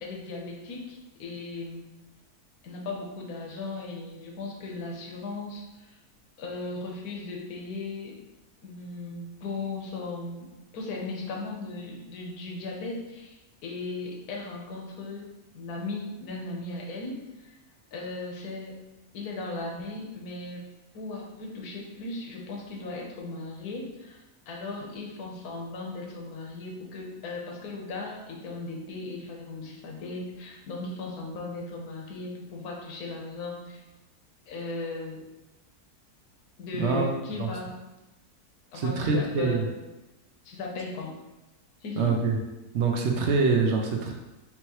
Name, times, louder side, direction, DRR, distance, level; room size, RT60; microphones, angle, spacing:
voice 1, 0.0-1.9 2.6-6.0 6.4-8.2 8.6-10.5 10.7-15.3 15.5-17.5 17.9-18.8 19.1-20.6 20.9-33.8 34.5-35.2 36.6-37.7 38.7-39.8 40.4-41.2 41.8-42.2, left 3 dB, 75° left, 0 dB, 1.3 m, -37 dB
voice 2, 38.7-39.6 42.0-42.4 42.7-44.1, right 4 dB, 65° right, 1 dB, 0.7 m, -25 dB
4.6 x 2.9 x 3.0 m, 1.0 s
omnidirectional pair, 1.6 m